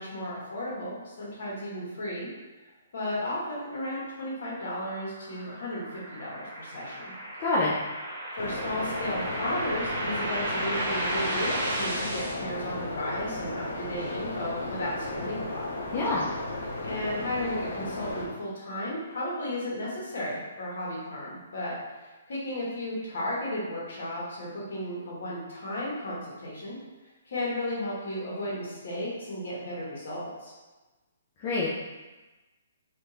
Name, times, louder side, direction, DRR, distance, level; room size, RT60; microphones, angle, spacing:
voice 1, 0.0-2.3 2.9-7.1 8.4-15.7 16.8-21.7 22.0-26.8 27.3-30.5, left 1 dB, 55° left, -5 dB, 1.2 m, -34 dB
sound 1, 4.5-12.3, right 1 dB, 30° right, 0.7 m, -34 dB
voice 2, 7.4-7.7 15.9-16.3 31.4-31.7, left 2 dB, 25° left, -7 dB, 0.4 m, -26 dB
sound 2, 8.4-18.3, left 2 dB, 85° left, 0.8 m, -35 dB
3.5 x 2.4 x 2.8 m, 1.2 s
hypercardioid pair, 175°, 0 cm